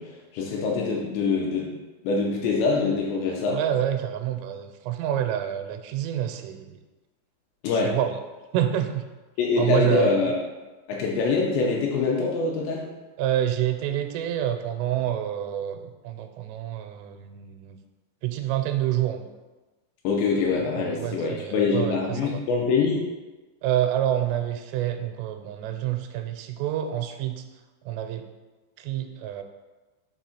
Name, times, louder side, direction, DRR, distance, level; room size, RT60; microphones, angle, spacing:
voice 1, 0.0-1.7 2.0-3.6 7.6-8.0 9.4-10.4 10.9-12.9 20.0-23.0, left 4 dB, 80° left, -2 dB, 2.6 m, -24 dB
voice 2, 3.5-6.8 7.8-8.2 8.5-9.0 9.6-10.1 13.2-17.8 18.2-19.2 20.8-22.4 23.6-27.4 27.9-28.3 28.8-29.4, right 11 dB, 90° right, 7 dB, 3.1 m, -27 dB
7.2 x 2.9 x 5.7 m, 1.2 s
omnidirectional pair, 5.6 m